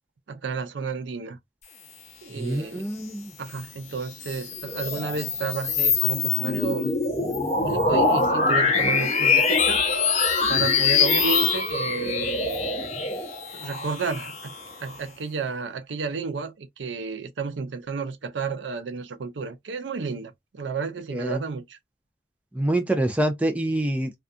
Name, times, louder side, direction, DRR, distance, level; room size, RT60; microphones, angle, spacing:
voice 1, 0.3-1.4 2.2-2.9 3.4-6.9 7.6-9.8 10.5-12.9 13.5-14.5 14.8-21.8, right 5 dB, 85° right, 0.5 m, -32 dB
voice 2, 2.3-3.3 21.1-21.4 22.5-24.1, right 1 dB, 10° right, 0.4 m, -26 dB
sound 1, 4.0-15.0, left 4 dB, 35° left, 0.6 m, -24 dB
2.5 x 2.3 x 2.5 m
head